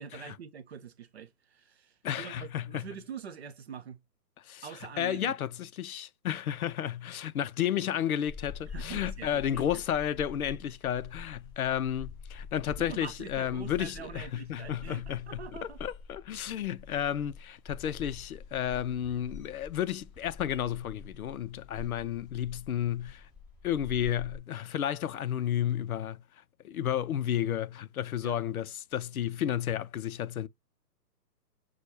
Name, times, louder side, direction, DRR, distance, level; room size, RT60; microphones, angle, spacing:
voice 1, 0.0-4.0 4.6-5.4 8.6-9.8 12.6-15.8 28.2-28.4, right 7 dB, 40° right, 0.5 m, -45 dB
voice 2, 2.0-2.9 4.4-4.7 5.0-15.4 15.8-23.3 23.6-26.2 26.6-30.5, left 10 dB, 60° left, 0.5 m, -32 dB
sound 1, 8.3-24.4, left 5 dB, ahead, 3.0 m, -46 dB
6.0 x 2.3 x 2.6 m
hypercardioid pair, 140°, 50 cm